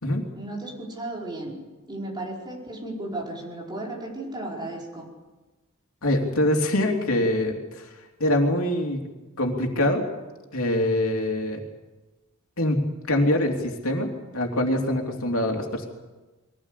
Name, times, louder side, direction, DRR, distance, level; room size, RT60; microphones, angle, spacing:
voice 1, 0.3-1.5 1.9-5.1, right 1 dB, 20° right, -2 dB, 4.9 m, -34 dB
voice 2, 6.0-7.9 8.2-9.0 9.4-10.0 10.5-11.6 12.6-14.1 14.3-15.9, left 1 dB, 75° left, 2 dB, 3.2 m, -24 dB
22.5 x 17.5 x 8.3 m, 1.2 s
head